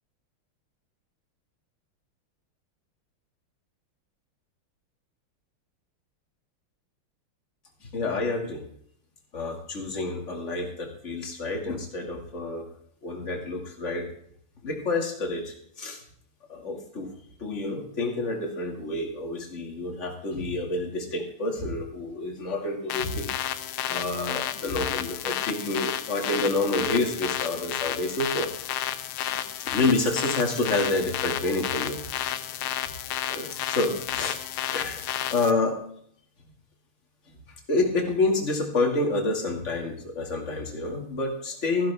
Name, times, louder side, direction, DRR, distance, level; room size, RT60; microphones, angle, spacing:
voice 1, 7.9-8.6 9.3-12.7 13.0-14.1 14.6-16.0 16.5-17.1 17.4-23.3 23.9-28.5 29.7-32.3 33.3-34.4 34.7-35.1 35.3-35.8 37.7-41.9, left 2 dB, 35° left, 1 dB, 2.3 m, -28 dB
sound 1, 22.9-35.5, left 11 dB, 80° left, 1.6 m, -32 dB
14.0 x 11.5 x 3.4 m, 0.64 s
omnidirectional pair, 2.3 m